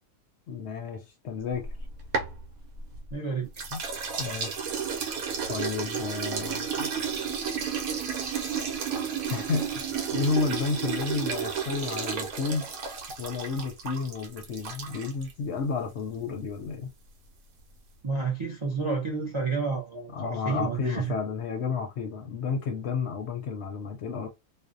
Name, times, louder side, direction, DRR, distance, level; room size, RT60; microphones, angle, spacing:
voice 1, 0.5-1.7 3.7-3.8 4.2-4.6 5.5-6.9 9.3-9.8 10.1-12.7 13.2-16.9 20.1-24.3, left 5 dB, 65° left, 0.7 m, -31 dB
sound 1, 1.5-3.1 3.6-15.3, right 6 dB, 90° right, 1.1 m, -32 dB
voice 2, 3.1-3.5 18.0-21.1, right 4 dB, 45° right, 0.4 m, -30 dB
2.5 x 2.0 x 2.4 m
omnidirectional pair, 1.5 m